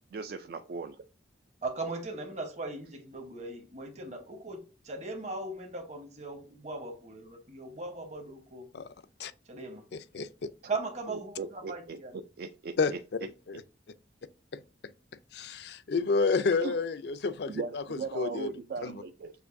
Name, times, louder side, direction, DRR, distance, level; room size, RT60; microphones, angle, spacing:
voice 1, 0.1-1.0 11.1-12.0 12.4-13.0 16.6-16.7 17.5-19.3, right 4 dB, 55° right, 0.3 m, -38 dB
voice 2, 1.6-8.7 9.5-9.8 10.7-12.2, right 3 dB, 40° right, 1.0 m, -38 dB
voice 3, 9.9-10.3 12.8-12.9 13.5-13.6 14.5-14.6 15.3-17.8 18.1-18.5 18.8-18.9, left 4 dB, 65° left, 0.4 m, -29 dB
6.8 x 2.6 x 2.5 m
head